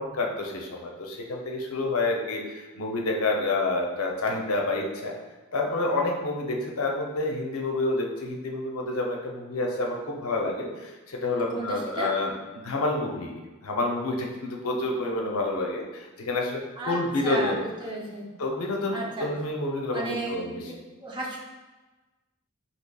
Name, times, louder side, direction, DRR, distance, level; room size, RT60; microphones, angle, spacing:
voice 1, 0.0-5.1 5.5-13.3 13.6-17.6 18.4-20.6, left 2 dB, 70° left, 0 dB, 0.6 m, -28 dB
voice 2, 11.5-12.1 16.8-18.3 18.9-19.3 19.9-20.7 21.0-21.4, right 1 dB, 20° right, -3 dB, 0.5 m, -33 dB
4.3 x 2.9 x 2.2 m, 1.2 s
head